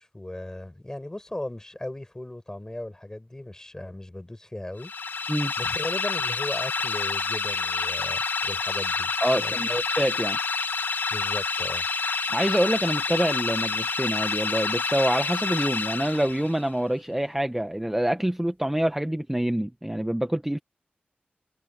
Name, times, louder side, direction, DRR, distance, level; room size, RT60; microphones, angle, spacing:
voice 1, 0.0-4.9 5.6-9.1 9.4-9.8 11.1-11.9, left 1 dB, 15° left, 6.1 m, -37 dB
sound 1, 4.8-16.7, left 4 dB, 75° left, 2.5 m, -28 dB
voice 2, 9.2-10.4 12.3-20.6, right 1 dB, 10° right, 1.2 m, -26 dB
wide cardioid pair, 105°, 4 cm